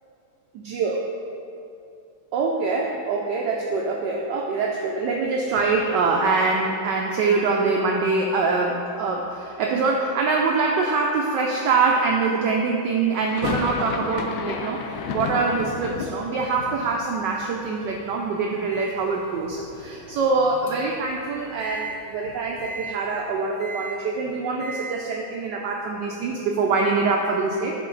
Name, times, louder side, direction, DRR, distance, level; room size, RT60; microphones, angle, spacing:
voice 1, 0.5-1.0 2.3-27.7, right 4 dB, 75° right, 0 dB, 1.1 m, -24 dB
sound 1, 13.1-19.1 19.4-20.2 20.5-20.6 20.8-23.0, left 5 dB, 85° left, 0.8 m, -34 dB
Microwave oven, 18.7-21.0 21.6-21.9 22.6-22.9 23.6-24.0 24.6-24.9, right 3 dB, 25° left, 0.6 m, -38 dB
10.5 x 3.8 x 3.8 m, 2.6 s
omnidirectional pair, 2.2 m